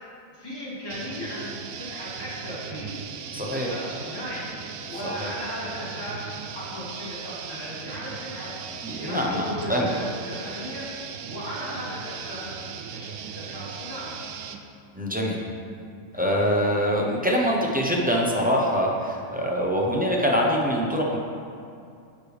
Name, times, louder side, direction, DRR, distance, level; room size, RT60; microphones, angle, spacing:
voice 1, 0.3-3.0 3.3-4.5 4.8-8.6 8.9-10.9 11.2-14.1 16.1-16.3, equal, 15° left, -10 dB, 2.1 m, -36 dB
sound 1, 0.9-14.6, right 7 dB, 85° right, 1.1 m, -38 dB
voice 2, 3.3-3.7 5.0-5.3 8.8-9.9 15.0-15.4 16.1-21.2, equal, 10° right, -3 dB, 0.6 m, -24 dB
9.8 x 6.7 x 3.4 m, 2.5 s
omnidirectional pair, 1.5 m